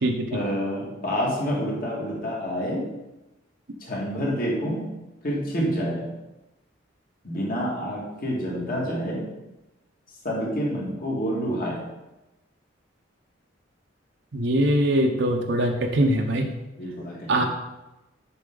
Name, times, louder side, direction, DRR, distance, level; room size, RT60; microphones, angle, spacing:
voice 1, 0.3-2.9 3.8-6.2 7.2-9.3 10.2-11.9 16.8-17.5, equal, 50° left, -3 dB, 2.0 m, -28 dB
voice 2, 14.3-16.5 17.3-17.5, right 1 dB, 70° right, 3 dB, 0.7 m, -22 dB
6.9 x 5.7 x 3.8 m, 0.98 s
head